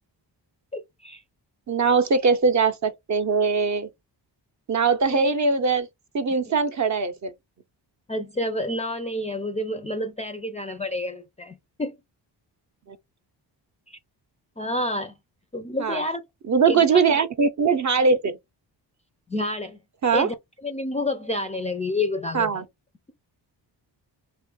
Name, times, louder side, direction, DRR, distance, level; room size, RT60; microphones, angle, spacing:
voice 1, 0.7-1.2 5.1-5.3 8.1-12.0 13.9-14.0 14.6-15.2 15.5-16.2 16.7-17.2 18.1-18.2 19.3-19.8 20.1-20.3 20.6-22.6, left 1 dB, 15° left, 0.4 m, -29 dB
voice 2, 1.7-3.9 4.7-5.9 6.1-7.3 12.9-13.0 15.8-16.0 16.5-18.4 20.0-20.3 22.3-22.6, right 4 dB, 40° right, 0.6 m, -21 dB
2.7 x 2.4 x 3.6 m
cardioid pair, 85°, 43 cm